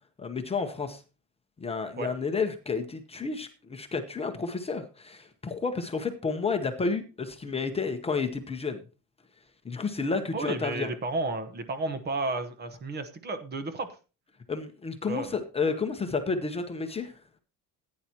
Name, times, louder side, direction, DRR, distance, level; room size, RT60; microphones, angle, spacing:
voice 1, 0.2-1.0 1.6-8.8 9.6-10.9 14.5-17.1, left 4 dB, 15° left, 6 dB, 0.8 m, -31 dB
voice 2, 10.3-13.9 15.1-15.4, right 3 dB, 30° right, 10 dB, 1.1 m, -32 dB
16.0 x 9.5 x 2.9 m, 0.32 s
cardioid pair, 175°, 34 cm